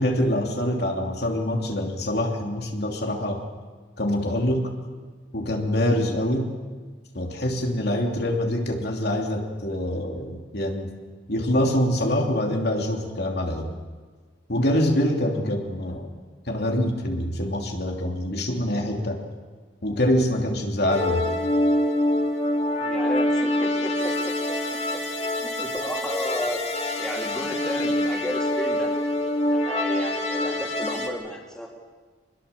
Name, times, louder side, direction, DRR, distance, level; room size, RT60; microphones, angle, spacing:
voice 1, 0.0-3.4 4.0-4.7 5.3-6.5 7.1-10.9 11.3-13.7 14.5-16.1 16.5-19.2 19.8-21.3, left 1 dB, 60° left, 1 dB, 2.9 m, -25 dB
sound 1, 20.9-31.1, left 1 dB, 35° left, 2.6 m, -25 dB
voice 2, 22.8-24.3 24.7-26.6 27.0-28.9 29.5-31.7, equal, 5° left, -1 dB, 3.6 m, -33 dB
26.0 x 21.0 x 7.1 m, 1.4 s
head